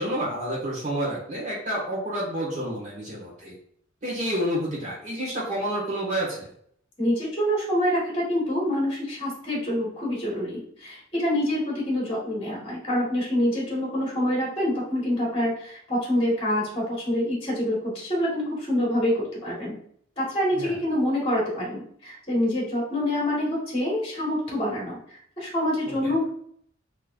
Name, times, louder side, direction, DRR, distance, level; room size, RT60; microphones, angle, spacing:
voice 1, 0.0-3.6 4.0-6.5 20.5-20.7 26.0-26.1, equal, 35° right, -5 dB, 1.7 m, -29 dB
voice 2, 7.0-19.7 20.2-26.2, left 1 dB, 30° left, -4 dB, 1.6 m, -26 dB
4.3 x 3.4 x 2.5 m, 0.64 s
head